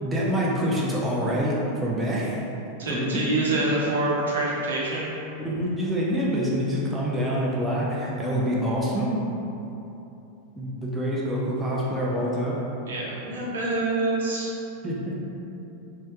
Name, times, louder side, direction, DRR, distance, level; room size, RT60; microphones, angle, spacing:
voice 1, 0.0-1.6 1.8-2.4 2.9-3.2 5.4-9.1 10.6-12.6 14.8-15.1, equal, 10° right, -5 dB, 0.6 m, -26 dB
voice 2, 2.8-5.1 12.9-14.5, right 2 dB, 65° right, -5 dB, 0.7 m, -26 dB
3.2 x 2.8 x 3.4 m, 2.9 s
figure-of-eight pair, 90°, 0 cm